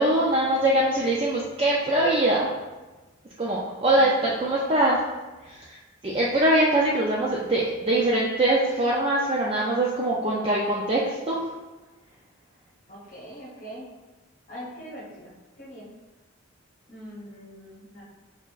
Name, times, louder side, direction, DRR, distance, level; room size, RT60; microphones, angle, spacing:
voice 1, 0.0-2.6 3.4-5.0 5.4-11.5, right 1 dB, 25° right, -4 dB, 0.4 m, -23 dB
voice 2, 3.9-5.0 12.9-13.9 14.5-15.9 16.9-18.0, equal, 40° left, -7 dB, 0.9 m, -42 dB
5.6 x 3.5 x 2.4 m, 1.2 s
head